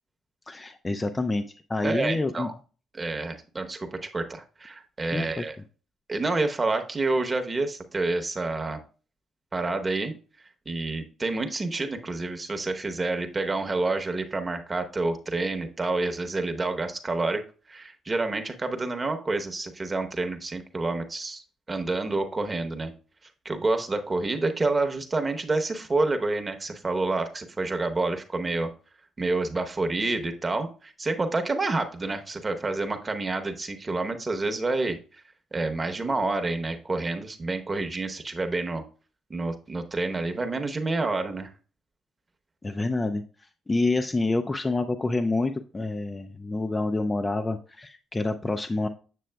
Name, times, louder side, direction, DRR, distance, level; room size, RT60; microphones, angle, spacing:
voice 1, 0.5-2.5 5.1-5.4 42.6-43.2 43.7-48.9, left 2 dB, 20° left, 7 dB, 0.4 m, -27 dB
voice 2, 1.8-2.5 2.9-5.6 6.1-8.8 9.5-10.1 10.7-22.9 23.4-28.7 29.2-35.0 35.5-38.8 39.3-41.5, right 3 dB, 25° right, 6 dB, 0.9 m, -28 dB
7.6 x 6.6 x 2.2 m, 0.38 s
cardioid pair, 90°, 0 cm